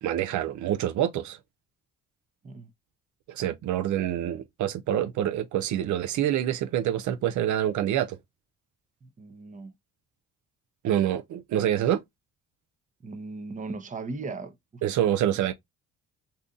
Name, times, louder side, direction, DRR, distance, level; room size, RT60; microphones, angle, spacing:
voice 1, 0.0-1.4 3.3-8.2 10.8-12.0 14.8-15.5, right 11 dB, 75° right, 0.6 m, -26 dB
voice 2, 9.0-9.7 13.0-14.8 15.3-15.5, right 3 dB, 25° right, 0.7 m, -38 dB
2.7 x 2.5 x 3.6 m
cardioid pair, 90°, 30 cm